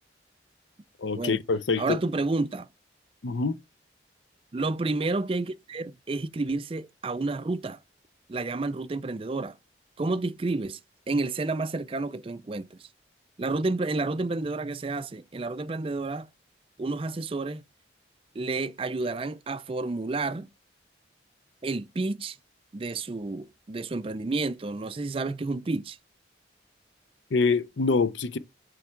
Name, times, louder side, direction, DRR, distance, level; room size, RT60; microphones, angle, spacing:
voice 1, 1.0-2.0 3.2-3.6 27.3-28.4, left 4 dB, 75° left, 0.6 m, -25 dB
voice 2, 1.8-2.7 4.5-7.8 8.3-9.6 10.0-10.8 11.1-12.9 13.4-16.3 16.8-17.6 18.3-20.5 21.6-22.4 22.7-26.0, right 3 dB, 30° right, 0.4 m, -30 dB
7.9 x 3.4 x 4.4 m
head